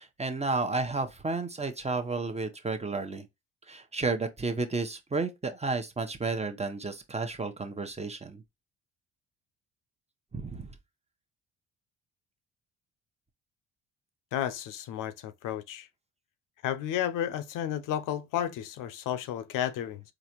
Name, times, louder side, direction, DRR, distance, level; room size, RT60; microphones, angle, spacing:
voice 1, 0.0-3.3 3.7-8.4 10.3-10.7, right 3 dB, 20° right, 0.9 m, -32 dB
voice 2, 14.3-15.9 16.6-20.0, left 10 dB, 70° left, 0.6 m, -32 dB
4.0 x 2.5 x 2.9 m
supercardioid pair, 60°, 33 cm